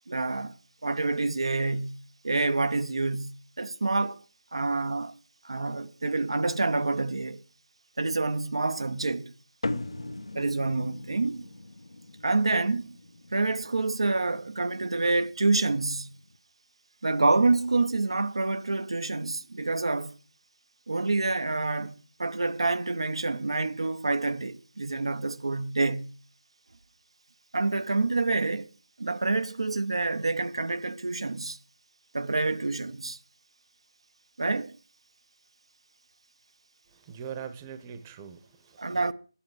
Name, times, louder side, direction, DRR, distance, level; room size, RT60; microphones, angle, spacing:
voice 1, 0.1-0.5 0.8-4.2 4.5-5.1 5.4-7.4 8.0-9.3 10.3-11.5 12.2-13.0 13.3-16.1 17.0-20.1 20.9-21.9 22.2-26.2 27.5-28.7 29.0-31.6 32.1-33.2 34.4-34.8 38.8-39.1, right 3 dB, 80° right, 0.8 m, -27 dB
sound 1, 9.6-16.4, left 2 dB, 85° left, 1.1 m, -40 dB
voice 2, 36.9-39.1, right 7 dB, 20° right, 0.8 m, -42 dB
12.0 x 10.0 x 4.7 m
figure-of-eight pair, 165°, 3 cm